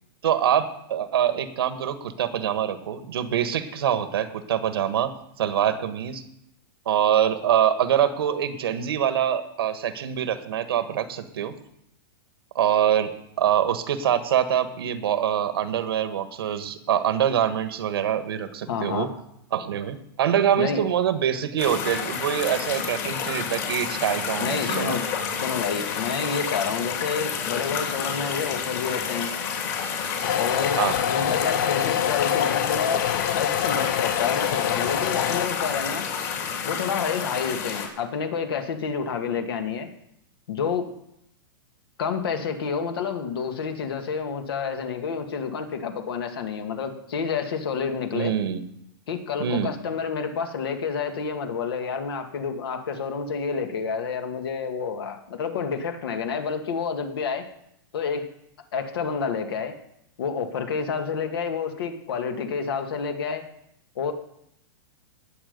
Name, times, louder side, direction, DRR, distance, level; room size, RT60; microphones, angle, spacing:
voice 1, 0.2-5.1 5.4-6.2 6.8-11.5 12.5-19.1 19.5-25.0 30.8-31.0 48.1-48.6 49.4-49.7, right 9 dB, 85° right, 10 dB, 1.4 m, -24 dB
voice 2, 18.7-19.1 20.6-20.8 24.4-25.0 25.4-29.3 30.4-30.8 31.1-36.1 36.6-39.9 40.5-40.9 42.0-48.3 49.1-57.5 57.9-58.3 58.7-59.8 60.2-63.4 64.0-64.1, left 6 dB, 80° left, 6 dB, 2.0 m, -29 dB
sound 1, 21.6-37.9, left 7 dB, 45° left, 3.1 m, -30 dB
sound 2, 30.2-35.5, left 11 dB, 60° left, 0.7 m, -26 dB
19.0 x 7.3 x 5.3 m, 0.78 s
supercardioid pair, 150°, 12 cm